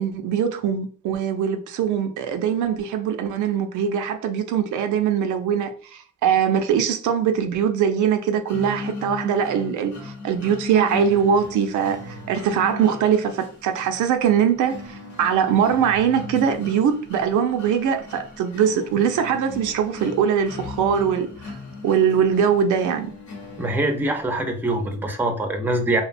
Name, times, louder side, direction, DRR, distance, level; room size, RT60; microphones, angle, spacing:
voice 1, 0.0-21.5 21.8-23.1, right 8 dB, 75° right, 0.5 m, -22 dB
sound 1, 8.5-24.4, left 3 dB, 70° left, 0.9 m, -37 dB
voice 2, 23.6-26.0, right 1 dB, 5° right, 0.4 m, -23 dB
2.8 x 2.1 x 2.5 m
cardioid pair, 90°, 30 cm